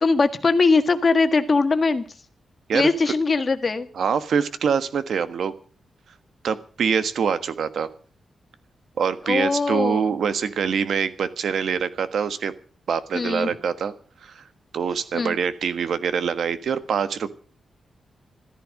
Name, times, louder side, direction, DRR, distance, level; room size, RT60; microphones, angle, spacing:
voice 1, 0.0-2.0 2.7-3.9 9.3-10.1 13.1-13.5 15.1-15.4, left 4 dB, 35° left, 9 dB, 1.6 m, -21 dB
voice 2, 2.7-3.1 3.9-5.5 6.4-7.9 9.0-12.5 12.9-13.9 14.2-14.4 14.7-17.3, right 6 dB, 70° right, 12 dB, 1.4 m, -24 dB
14.5 x 13.5 x 6.5 m, 0.42 s
wide cardioid pair, 145°, 0 cm